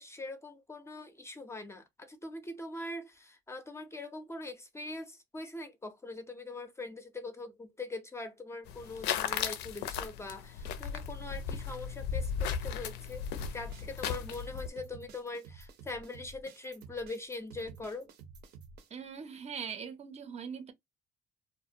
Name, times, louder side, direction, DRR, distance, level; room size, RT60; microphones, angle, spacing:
voice 1, 0.0-13.3 13.5-18.1, left 2 dB, 15° left, 0.4 m, -42 dB
sound 1, 8.7-14.7, left 7 dB, 80° left, 0.4 m, -36 dB
sound 2, 13.4-18.9, right 5 dB, 80° right, 0.7 m, -52 dB
voice 2, 18.9-20.7, right 7 dB, 40° right, 0.5 m, -41 dB
2.4 x 2.1 x 2.6 m
cardioid pair, 110°, 17 cm